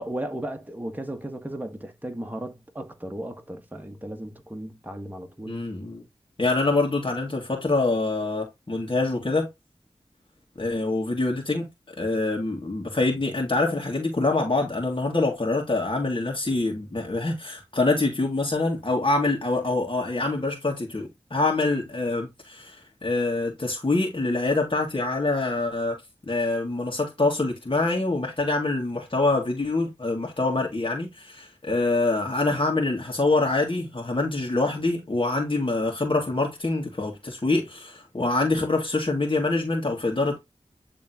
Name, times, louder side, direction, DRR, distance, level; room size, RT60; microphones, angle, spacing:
voice 1, 0.0-5.6, right 1 dB, 15° right, 1.4 m, -35 dB
voice 2, 5.5-6.0 6.4-9.5 10.6-11.7 12.0-26.0 26.3-40.4, left 2 dB, 45° left, 2.1 m, -25 dB
9.8 x 3.6 x 2.8 m
wide cardioid pair, 50°, 12 cm